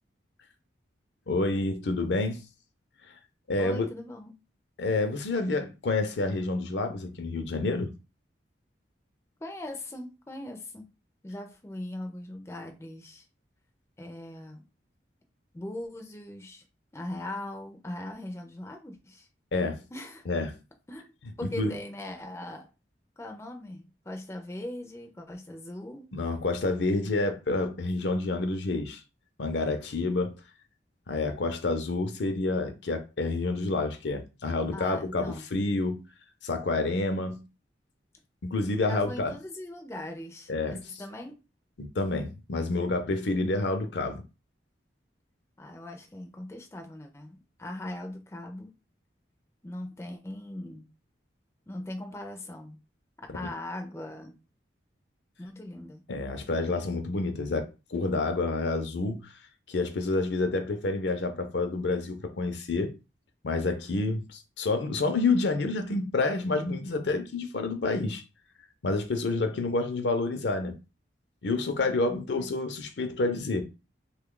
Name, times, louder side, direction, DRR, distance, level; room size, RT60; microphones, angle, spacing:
voice 1, 1.3-2.5 3.5-3.9 4.8-7.9 19.5-19.8 20.3-20.5 21.6-21.7 26.1-29.0 29.4-30.3 31.1-36.1 36.4-37.5 38.4-39.3 40.5-40.8 41.8-44.2 56.1-59.3 59.7-62.9 63.4-68.2 68.8-70.8 71.4-73.6, left 3 dB, 70° left, 0.6 m, -28 dB
voice 2, 3.6-4.3 9.4-10.9 11.2-13.3 14.0-14.6 15.5-16.6 16.9-19.3 19.9-20.3 20.9-21.1 21.4-22.7 23.2-26.1 34.7-35.5 38.9-41.3 45.6-48.7 49.6-50.9 51.7-52.8 53.2-54.4 55.4-56.0 72.3-72.5, left 1 dB, 15° left, 0.4 m, -40 dB
3.0 x 2.3 x 3.7 m
head